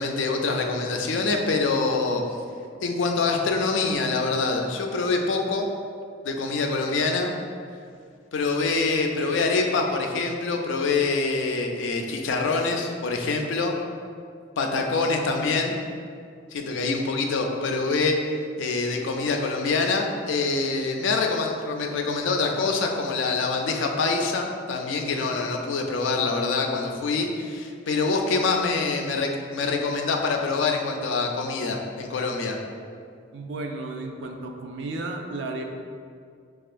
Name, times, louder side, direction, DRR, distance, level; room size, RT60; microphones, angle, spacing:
voice 1, 0.0-2.2 2.8-5.7 6.2-7.3 8.3-13.7 14.6-15.8 16.5-18.2 18.6-32.6, left 3 dB, 80° left, 2 dB, 0.4 m, -25 dB
voice 2, 33.3-35.7, right 2 dB, 70° right, 3 dB, 0.4 m, -33 dB
5.3 x 2.3 x 2.4 m, 2.2 s
head